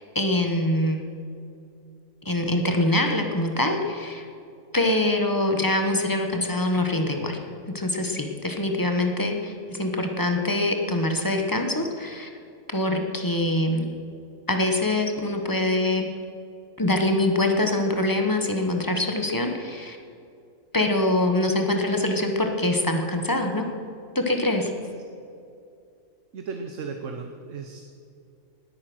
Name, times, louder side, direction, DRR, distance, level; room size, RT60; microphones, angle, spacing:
voice 1, 0.1-1.0 2.2-4.3 4.7-7.4 7.7-12.3 12.7-13.9 14.5-16.1 16.8-20.0 20.7-23.7 24.1-24.7, left 1 dB, 15° left, 4 dB, 1.2 m, -24 dB
voice 2, 26.3-28.0, right 5 dB, 65° right, 5 dB, 1.3 m, -36 dB
19.5 x 8.7 x 6.2 m, 2.6 s
omnidirectional pair, 1.4 m